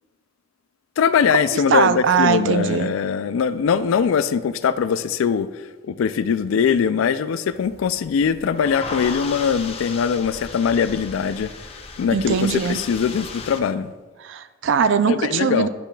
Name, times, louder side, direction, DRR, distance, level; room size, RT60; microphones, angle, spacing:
voice 1, 1.0-5.5 5.8-11.5 12.0-13.9 15.1-15.7, left 6 dB, 85° left, 0.3 m, -21 dB
voice 2, 1.5-2.9 12.1-12.8 14.2-15.7, right 6 dB, 65° right, 0.4 m, -20 dB
sound 1, 7.5-13.6, left 4 dB, 30° left, 0.5 m, -36 dB
10.0 x 5.7 x 2.3 m
head